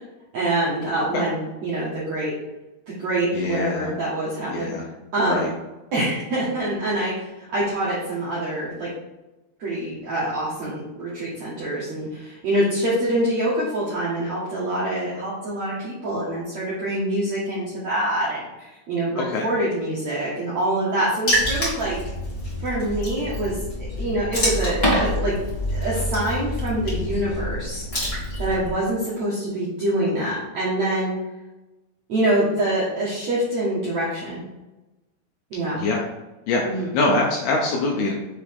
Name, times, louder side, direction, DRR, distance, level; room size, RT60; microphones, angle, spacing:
voice 1, 0.3-2.3 2.9-4.7 5.1-5.4 5.9-8.9 9.6-22.0 22.6-25.4 25.7-27.8 28.4-31.1 32.1-34.4 35.5-35.8 36.6-36.9, right 1 dB, 75° right, -8 dB, 1.6 m, -25 dB
voice 2, 3.3-3.9 4.5-4.8 5.3-5.5 19.3-19.5 35.8-36.0 36.5-38.1, left 2 dB, 80° left, -1 dB, 2.2 m, -23 dB
Water / Splash splatter, 21.3-28.7, equal, 40° left, 0.8 m, -26 dB
6.9 x 4.9 x 3.6 m, 1.0 s
omnidirectional pair, 5.6 m